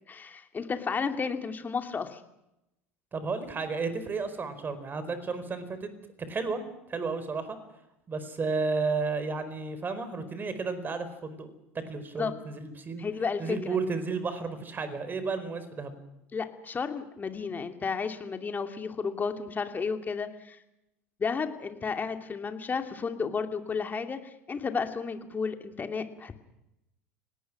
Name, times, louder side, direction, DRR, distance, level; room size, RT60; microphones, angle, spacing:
voice 1, 0.1-2.2 12.2-12.3 13.0-13.6 16.3-20.6 21.2-26.3, left 5 dB, 25° left, 7 dB, 2.7 m, -32 dB
voice 2, 3.1-5.9 6.3-6.6 6.9-7.6 8.1-11.5 11.9-13.0 13.4-15.9, right 4 dB, 25° right, 11 dB, 4.7 m, -32 dB
29.5 x 18.5 x 6.2 m, 0.87 s
hypercardioid pair, 75°, 7 cm